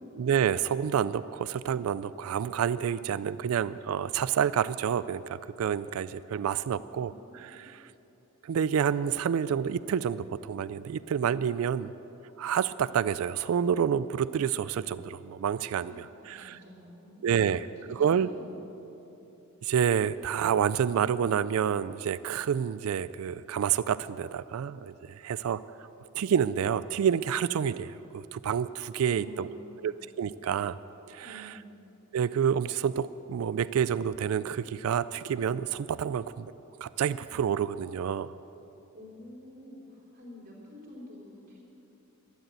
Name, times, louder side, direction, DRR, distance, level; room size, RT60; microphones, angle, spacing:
voice 1, 0.2-7.8 8.4-11.9 12.4-16.5 17.2-17.7 18.0-18.3 19.6-25.6 26.1-29.5 29.8-30.8 31.1-31.3 32.1-36.5 36.8-38.3, right 8 dB, 90° right, 16 dB, 0.3 m, -28 dB
voice 2, 6.7-7.7 15.8-18.9 29.0-30.0 31.2-31.8 38.9-41.6, equal, 40° right, -3 dB, 4.1 m, -49 dB
13.0 x 10.5 x 8.1 m, 3.0 s
head